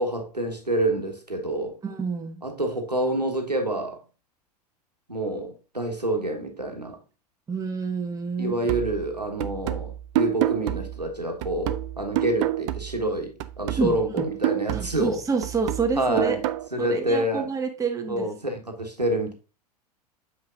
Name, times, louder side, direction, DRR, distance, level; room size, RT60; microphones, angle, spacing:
voice 1, 0.0-1.8 2.4-4.0 5.1-7.0 8.4-15.2 15.9-16.4 16.7-17.5 18.1-19.3, right 1 dB, 90° right, 1.4 m, -27 dB
voice 2, 1.8-2.4 7.5-8.6 13.7-14.3 14.7-16.4 16.8-18.3, right 5 dB, 15° right, 1.4 m, -28 dB
sound 1, 8.7-13.1 13.4-16.7, right 14 dB, 45° right, 0.6 m, -29 dB
7.7 x 5.6 x 2.5 m
figure-of-eight pair, 90°, 20 cm